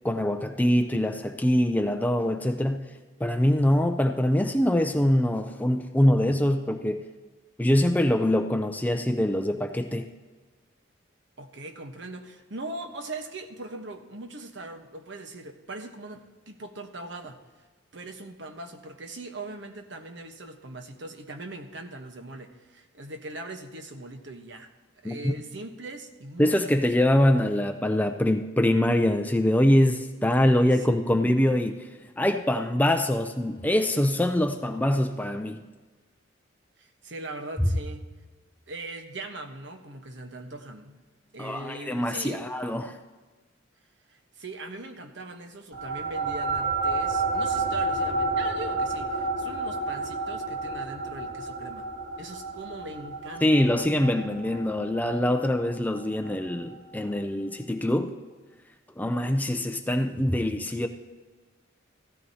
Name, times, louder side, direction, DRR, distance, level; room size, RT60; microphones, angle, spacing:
voice 1, 0.0-2.9 3.2-7.0 7.6-10.1 25.0-25.3 26.4-31.9 32.2-35.6 41.4-43.0 53.4-58.2 59.0-60.9, left 1 dB, 10° left, 0.4 m, -24 dB
voice 2, 11.4-17.4 17.9-24.7 25.0-26.7 30.5-31.4 36.8-38.0 38.7-41.0 41.3-42.5 44.1-51.9 52.2-53.9, right 2 dB, 65° right, 1.1 m, -40 dB
sound 1, 45.7-56.5, right 3 dB, 80° right, 2.3 m, -30 dB
15.5 x 14.0 x 2.8 m
head